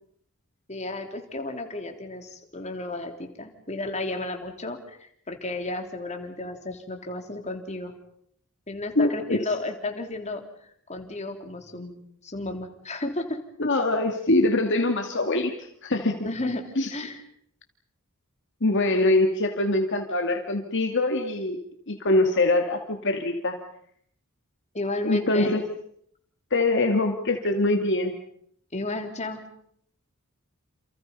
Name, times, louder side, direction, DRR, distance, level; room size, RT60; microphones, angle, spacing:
voice 1, 0.7-7.9 8.7-10.4 10.9-13.4 16.2-16.6 16.9-17.2 24.7-25.6 28.7-29.4, left 2 dB, 35° left, 4 dB, 3.6 m, -33 dB
voice 2, 9.0-9.4 13.6-15.5 15.8-16.2 16.8-16.9 18.6-21.6 21.9-23.6 25.0-25.6 26.5-28.1, left 2 dB, 60° left, 4 dB, 2.3 m, -23 dB
29.0 x 29.0 x 5.5 m, 0.68 s
head